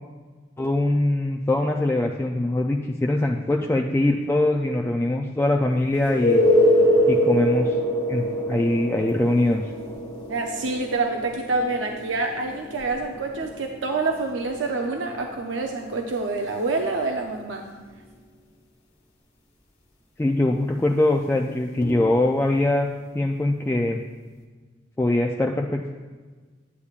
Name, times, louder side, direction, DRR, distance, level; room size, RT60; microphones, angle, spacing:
voice 1, 0.6-6.4 7.1-7.8 8.1-9.6 20.2-22.9 23.1-24.0 25.0-25.9, left 1 dB, 15° left, 1 dB, 0.3 m, -22 dB
sound 1, 6.0-17.5 21.8-21.9, equal, 35° left, 1.4 m, -25 dB
voice 2, 10.3-17.6, right 3 dB, 85° right, 3 dB, 0.6 m, -27 dB
9.7 x 8.4 x 2.4 m, 1.4 s
head